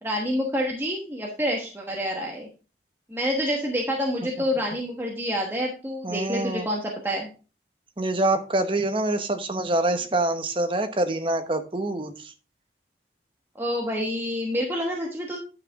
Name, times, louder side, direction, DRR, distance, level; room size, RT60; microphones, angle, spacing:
voice 1, 0.0-2.5 3.1-7.3 13.6-15.4, equal, 15° right, -1 dB, 1.2 m, -28 dB
voice 2, 6.0-6.7 8.0-12.3, right 2 dB, 30° right, 8 dB, 0.9 m, -25 dB
9.8 x 6.1 x 3.5 m, 0.35 s
head